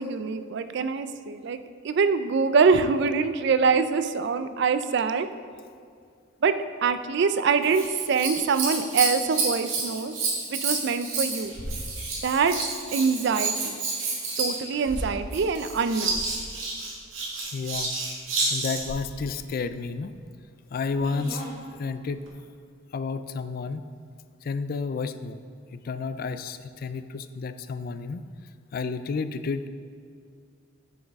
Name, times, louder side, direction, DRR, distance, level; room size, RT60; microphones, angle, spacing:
voice 1, 0.0-1.6 1.8-5.3 6.4-6.6 6.8-10.1 10.5-11.5 12.2-13.8 14.4-16.4, right 5 dB, 55° right, 11 dB, 0.4 m, -24 dB
Scissors, 7.6-19.0 20.9-21.5 22.3-22.4, right 3 dB, 80° right, 1.9 m, -30 dB
voice 2, 17.5-17.9 18.5-20.1 20.7-21.5 21.8-22.2 22.9-23.9 24.4-25.4 25.7-28.2 28.7-29.7, left 4 dB, 45° left, 11 dB, 0.3 m, -31 dB
9.2 x 6.4 x 3.5 m, 2.2 s
head